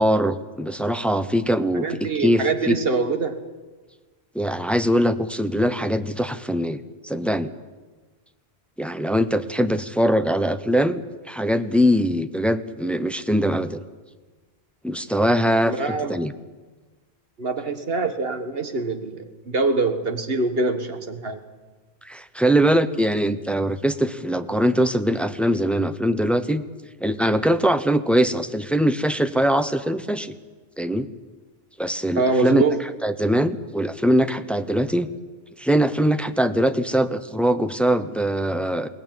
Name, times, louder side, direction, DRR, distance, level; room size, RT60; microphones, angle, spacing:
voice 1, 0.0-2.8 4.3-7.5 8.8-13.8 14.8-16.3 22.0-26.6 27.0-30.3 30.8-31.1 31.8-32.6 33.0-35.1 35.6-38.9, equal, ahead, 10 dB, 0.8 m, -22 dB
voice 2, 1.7-3.4 15.6-16.2 17.4-21.4 32.2-32.8, right 3 dB, 60° right, 7 dB, 1.8 m, -24 dB
22.0 x 18.5 x 9.1 m, 1.3 s
omnidirectional pair, 1.1 m